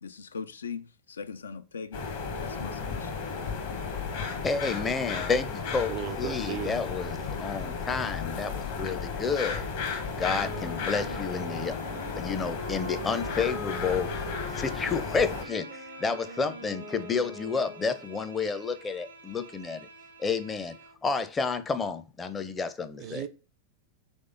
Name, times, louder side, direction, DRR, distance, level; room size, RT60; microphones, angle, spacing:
voice 1, 0.0-2.0 2.3-3.1, left 5 dB, 70° left, 0.3 m, -40 dB
sound 1, 1.9-15.4, left 5 dB, 55° left, 1.2 m, -34 dB
voice 2, 4.4-9.6 10.1-11.7 12.2-14.1 14.5-19.9 20.2-20.8 21.0-23.2, left 5 dB, 15° left, 0.5 m, -30 dB
voice 3, 5.9-6.8 23.0-23.3, right 10 dB, 45° right, 0.4 m, -35 dB
sound 2, 10.2-18.0, left 1 dB, 90° left, 0.9 m, -42 dB
Bowed string instrument, 14.7-21.1, right 3 dB, 75° right, 0.7 m, -50 dB
3.6 x 3.3 x 3.8 m
figure-of-eight pair, 90°, 0 cm